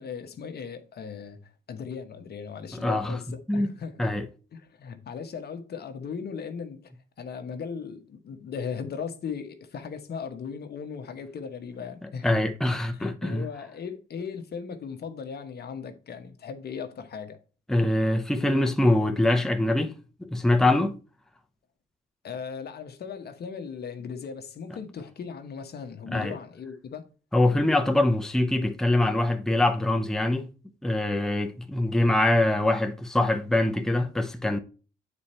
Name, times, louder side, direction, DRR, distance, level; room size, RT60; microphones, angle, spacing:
voice 1, 0.0-4.1 4.5-6.9 7.2-12.4 12.9-17.4 22.2-27.1, left 6 dB, 55° left, 1.1 m, -37 dB
voice 2, 2.7-3.2 3.5-3.7 4.0-4.3 12.0-13.5 17.7-21.0 26.1-26.4 27.3-30.5 30.8-34.6, left 1 dB, ahead, 0.9 m, -24 dB
8.5 x 4.3 x 4.4 m
cardioid pair, 90°, 20 cm